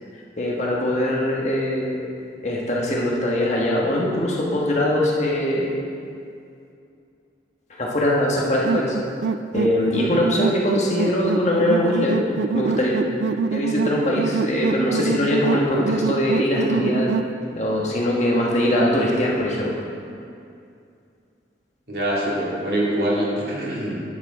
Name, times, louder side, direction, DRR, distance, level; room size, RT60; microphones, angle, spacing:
voice 1, 0.4-2.0 2.4-5.7 7.7-9.0 9.5-12.2 12.5-13.0 13.5-19.7, left 1 dB, 40° left, -3 dB, 1.4 m, -22 dB
sound 1, 8.6-17.3, right 4 dB, 85° right, 0.3 m, -25 dB
voice 2, 21.9-24.0, right 1 dB, 65° right, -5 dB, 2.3 m, -24 dB
9.9 x 6.9 x 4.9 m, 2.4 s
head